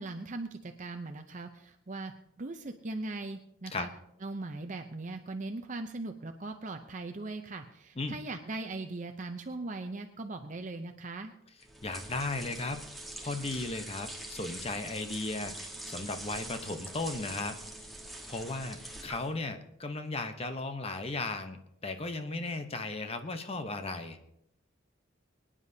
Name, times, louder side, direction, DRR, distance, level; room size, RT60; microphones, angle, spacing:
voice 1, 0.0-2.1 2.4-3.9 4.2-11.3, right 2 dB, 40° right, 6 dB, 0.6 m, -39 dB
sound 1, 11.6-19.4, right 1 dB, ahead, 1.3 m, -44 dB
voice 2, 11.8-12.8 13.2-17.6 18.3-24.2, left 3 dB, 30° left, 8 dB, 0.9 m, -36 dB
24.0 x 9.9 x 2.8 m, 0.77 s
head